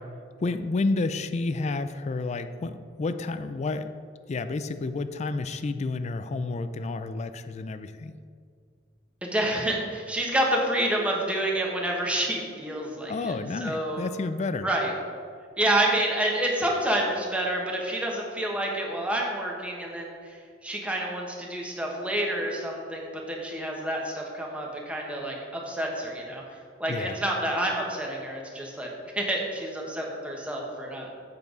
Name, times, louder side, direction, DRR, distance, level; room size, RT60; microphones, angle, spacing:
voice 1, 0.4-3.9 4.3-8.2 13.1-14.7 26.9-27.2, left 3 dB, 35° left, 11 dB, 0.3 m, -30 dB
voice 2, 9.2-13.3 13.6-14.1 14.6-14.9 15.6-26.4 26.8-28.9 29.1-31.1, right 1 dB, 5° right, -2 dB, 1.2 m, -28 dB
8.4 x 6.8 x 3.9 m, 2.1 s
head